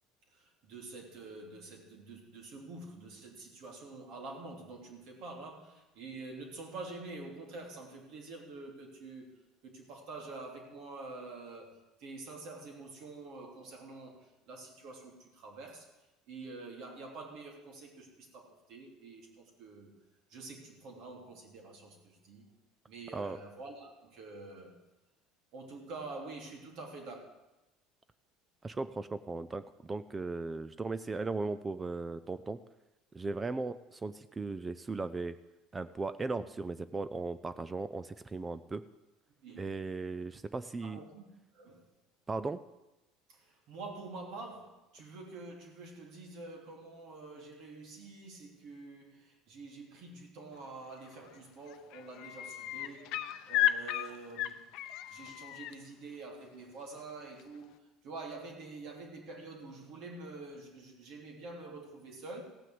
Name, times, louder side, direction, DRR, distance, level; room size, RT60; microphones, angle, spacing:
voice 1, 0.3-9.3 9.6-15.9 16.3-19.9 20.3-22.5 22.9-24.8 25.5-27.2 39.4-39.7 40.8-41.2 41.5-41.9 43.3-62.4, right 3 dB, 65° right, 1 dB, 3.1 m, -47 dB
voice 2, 28.6-32.6 33.1-35.4 35.7-38.8 39.6-41.0 42.3-42.6, right 3 dB, 20° right, 14 dB, 0.4 m, -37 dB
sound 1, 51.0-51.4 51.7-55.7 57.4-57.5, left 13 dB, 65° left, 0.6 m, -34 dB
15.5 x 6.1 x 7.8 m, 1.0 s
supercardioid pair, 120°, 0 cm